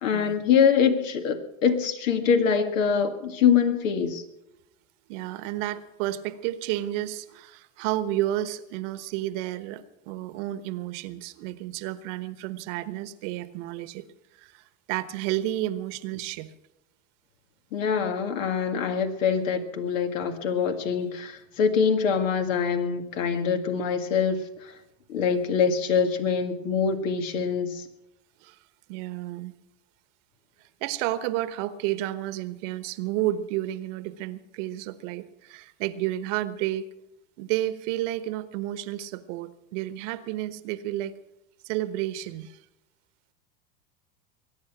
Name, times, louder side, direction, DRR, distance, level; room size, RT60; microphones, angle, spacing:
voice 1, 0.0-4.2 17.7-24.4 24.6-24.7 25.1-27.9, left 6 dB, 80° left, 7 dB, 2.0 m, -24 dB
voice 2, 5.1-14.0 14.3-16.5 25.3-25.8 28.4-28.6 28.9-29.5 30.8-36.9 37.4-41.1 41.6-42.6, right 14 dB, 65° right, 13 dB, 1.2 m, -31 dB
22.0 x 9.6 x 6.0 m, 0.88 s
hypercardioid pair, 95°, 39 cm